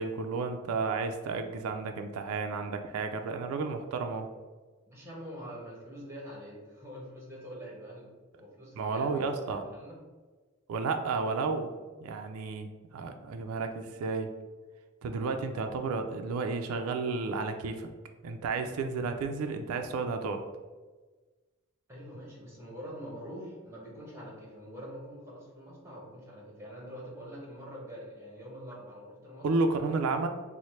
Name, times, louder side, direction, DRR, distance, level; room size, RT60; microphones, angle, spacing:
voice 1, 0.0-4.3 8.8-9.6 10.7-11.7 12.0-12.7 12.9-14.3 15.0-17.9 18.2-20.4 29.4-30.3, right 4 dB, 85° right, 6 dB, 0.3 m, -32 dB
voice 2, 4.9-8.1 8.4-10.0 21.9-30.0, equal, 10° right, -3 dB, 0.8 m, -45 dB
3.1 x 2.0 x 4.1 m, 1.3 s
head